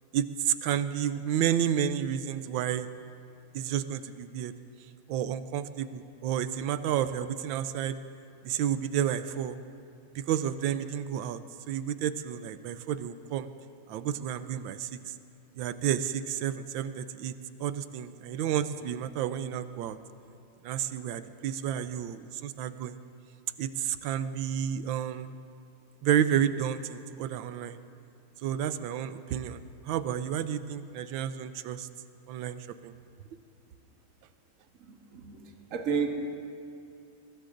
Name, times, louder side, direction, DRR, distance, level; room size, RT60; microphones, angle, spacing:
voice 1, 0.1-2.9 3.5-4.5 5.1-8.0 8.4-9.6 10.1-11.4 11.7-13.5 13.9-15.1 15.6-17.3 17.6-20.0 20.6-23.0 23.6-25.3 26.0-27.8 28.4-31.9 32.3-32.9, right 9 dB, 75° right, 12 dB, 1.3 m, -31 dB
voice 2, 34.8-36.1, right 6 dB, 45° right, 2 dB, 1.4 m, -32 dB
23.5 x 20.5 x 2.6 m, 2.5 s
omnidirectional pair, 2.2 m